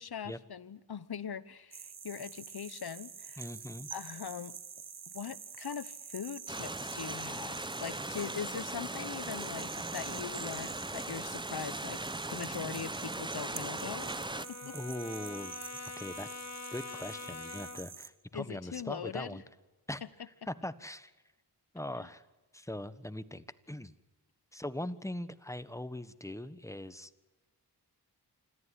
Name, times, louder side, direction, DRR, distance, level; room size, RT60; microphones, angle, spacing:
voice 1, 0.0-3.5 3.9-4.6 5.1-12.0 12.3-14.1 14.5-14.7 18.3-19.4, left 7 dB, 65° left, 17 dB, 1.1 m, -41 dB
sound 1, 1.7-18.1, right 6 dB, 65° right, 1.4 m, -47 dB
voice 2, 3.4-3.9 14.7-15.5 16.0-16.4 16.7-19.4 19.9-20.0 20.5-21.1 21.7-22.2 22.5-23.9 24.5-27.1, left 1 dB, 5° left, 13 dB, 1.4 m, -41 dB
sound 2, 6.5-14.5, right 2 dB, 10° right, 0.9 m, -39 dB
Brass instrument, 12.4-18.0, left 4 dB, 40° left, 1.7 m, -46 dB
26.5 x 14.0 x 9.9 m, 1.1 s
cardioid pair, 45°, 41 cm